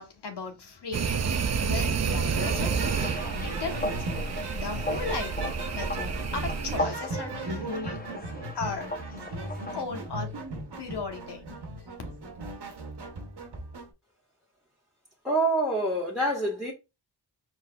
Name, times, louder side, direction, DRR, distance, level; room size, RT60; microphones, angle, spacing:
voice 1, 0.0-8.0 8.5-8.9 9.7-10.3 10.8-11.5, left 4 dB, 70° left, 1.1 m, -37 dB
sound 1, 0.9-6.8, right 5 dB, 40° right, 0.5 m, -30 dB
sound 2, 2.3-9.8, left 1 dB, 20° left, 0.6 m, -37 dB
sound 3, 2.3-13.9, right 2 dB, 70° right, 1.1 m, -38 dB
voice 2, 15.2-16.7, right 2 dB, ahead, 1.4 m, -26 dB
4.4 x 4.0 x 2.3 m
cardioid pair, 45°, 41 cm